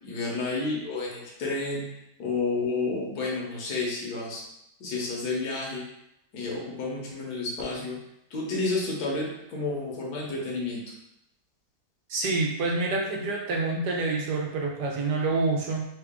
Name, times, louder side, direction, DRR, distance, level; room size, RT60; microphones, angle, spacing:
voice 1, 0.0-1.9 2.2-4.4 4.8-5.8 6.3-8.0 8.3-10.8, left 3 dB, 70° left, -3 dB, 1.4 m, -30 dB
voice 2, 12.1-15.8, right 3 dB, 80° right, -1 dB, 1.3 m, -27 dB
3.6 x 2.3 x 3.6 m, 0.83 s
omnidirectional pair, 1.8 m